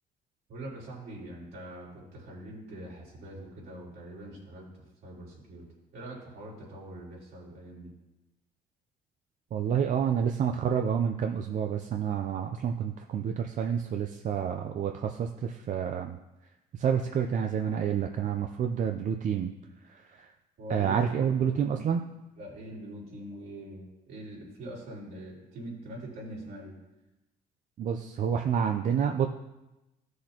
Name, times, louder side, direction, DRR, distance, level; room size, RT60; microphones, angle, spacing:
voice 1, 0.5-4.7 5.0-5.7 5.9-7.9 20.6-21.8 22.4-26.7, right 1 dB, 70° right, -5 dB, 3.8 m, -43 dB
voice 2, 9.5-16.2 16.7-19.5 19.9-20.3 20.7-22.1 27.8-29.3, right 8 dB, 50° right, 4 dB, 0.6 m, -29 dB
14.5 x 6.4 x 2.9 m, 0.99 s
cardioid pair, 110°, 17 cm